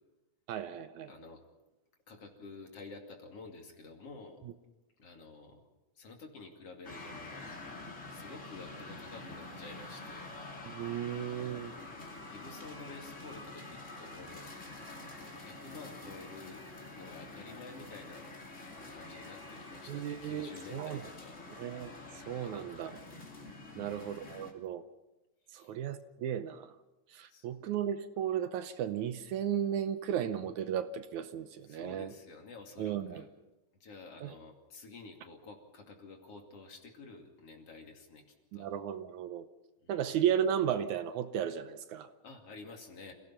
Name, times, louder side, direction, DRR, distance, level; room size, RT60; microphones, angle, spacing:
voice 1, 0.5-1.1 10.7-11.7 19.9-21.0 21.6-21.9 22.3-22.9 23.8-24.8 25.5-26.7 27.1-32.1 32.8-33.2 34.2-34.3 38.5-39.5 39.9-42.1, right 9 dB, 75° right, 10 dB, 2.1 m, -34 dB
voice 2, 1.1-1.4 2.1-4.4 5.0-5.6 6.0-7.5 8.1-10.3 12.3-14.5 15.4-16.6 16.9-18.3 18.9-21.4 22.4-22.9 23.7-24.1 25.5-25.7 27.3-27.5 31.7-33.3 33.8-38.2 38.5-38.7 39.8-40.0 42.2-43.1, left 3 dB, 50° left, 3 dB, 3.4 m, -50 dB
sound 1, 6.8-24.5, left 2 dB, 25° left, 2.7 m, -47 dB
27.5 x 17.0 x 5.8 m, 1.0 s
omnidirectional pair, 3.7 m